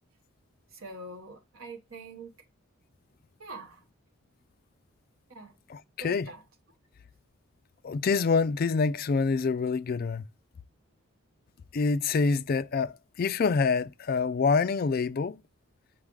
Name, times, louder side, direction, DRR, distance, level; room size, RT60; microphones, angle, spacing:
voice 1, 0.7-2.3 3.4-3.8 5.3-5.5 6.0-6.4, right 2 dB, 75° right, 1.0 m, -44 dB
voice 2, 5.7-6.3 7.8-10.2 11.7-15.4, left 4 dB, 45° left, 0.3 m, -26 dB
6.3 x 4.7 x 3.6 m
head